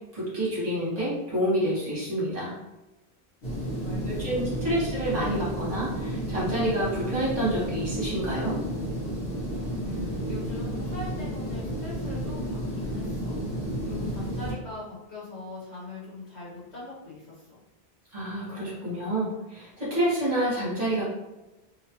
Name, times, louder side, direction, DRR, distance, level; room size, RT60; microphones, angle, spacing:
voice 1, 0.1-2.5 4.1-8.6 18.1-21.0, right 1 dB, 40° right, -8 dB, 1.1 m, -28 dB
sound 1, 3.4-14.5, equal, 65° left, 1.2 m, -32 dB
voice 2, 3.5-4.5 9.8-17.6, left 3 dB, 90° left, -8 dB, 1.2 m, -41 dB
2.7 x 2.3 x 2.8 m, 1.0 s
omnidirectional pair, 1.1 m